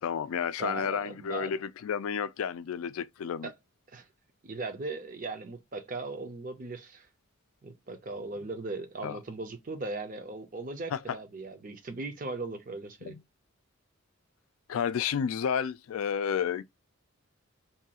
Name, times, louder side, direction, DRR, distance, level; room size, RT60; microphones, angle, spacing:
voice 1, 0.0-3.5 9.0-9.2 10.9-11.0 13.1-13.2 14.7-16.6, left 7 dB, 85° left, 0.3 m, -31 dB
voice 2, 0.6-1.5 3.4-3.5 3.9-4.1 4.4-7.1 7.6-13.2, right 3 dB, 40° right, 0.5 m, -38 dB
2.6 x 2.3 x 2.8 m
head